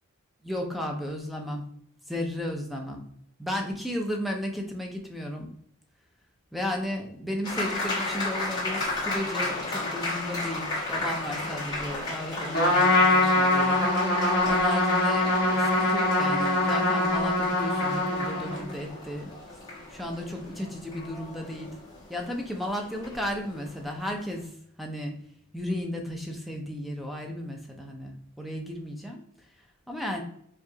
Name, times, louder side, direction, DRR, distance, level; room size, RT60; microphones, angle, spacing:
voice 1, 0.4-1.6 2.1-3.0 3.4-5.5 6.5-19.3 19.9-21.7 22.1-24.5 24.8-25.1 25.5-29.2 29.9-30.2, left 1 dB, ahead, 2 dB, 0.5 m, -34 dB
sound 1, 7.4-24.1, left 2 dB, 20° left, 1.4 m, -34 dB
Trumpet, 12.5-18.7, left 2 dB, 45° left, 1.3 m, -23 dB
4.6 x 2.4 x 2.7 m, 0.67 s
head